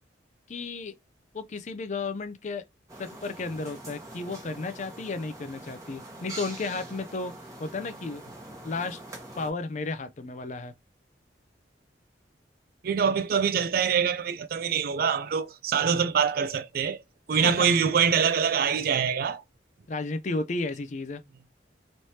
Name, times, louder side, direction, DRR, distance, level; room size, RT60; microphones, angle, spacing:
voice 1, 0.5-0.9 1.3-2.6 3.0-7.3 7.6-8.3 8.6-9.0 9.4-10.7 17.3-17.9 19.9-21.2, left 3 dB, 40° left, 0.4 m, -33 dB
sound 1, 2.9-9.5, right 1 dB, 20° right, 1.0 m, -44 dB
voice 2, 12.8-17.0 17.3-19.4, right 7 dB, 55° right, 0.3 m, -24 dB
3.2 x 3.2 x 2.7 m
head